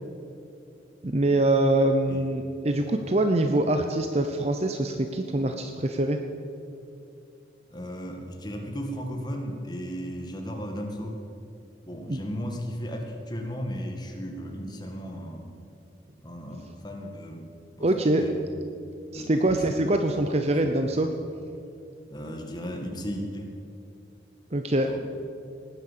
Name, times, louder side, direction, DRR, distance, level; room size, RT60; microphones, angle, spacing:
voice 1, 1.0-6.2 12.1-12.2 17.8-18.3 19.1-21.1 24.5-24.9, right 1 dB, 35° right, 6 dB, 0.7 m, -24 dB
voice 2, 7.7-11.2 11.9-15.5 16.2-18.4 19.1-20.0 20.4-20.7 22.1-23.5 24.9-25.0, equal, 25° left, 2 dB, 1.9 m, -36 dB
18.5 x 10.0 x 7.5 m, 2.6 s
head